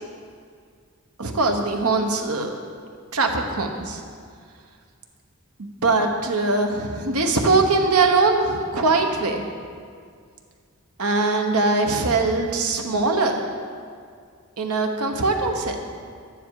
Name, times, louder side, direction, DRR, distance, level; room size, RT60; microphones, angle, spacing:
voice 1, 1.2-2.6 3.1-4.0 5.6-9.4 11.0-13.3 14.6-15.8, right 3 dB, 80° right, 3 dB, 1.2 m, -21 dB
12.0 x 9.9 x 4.9 m, 2.1 s
head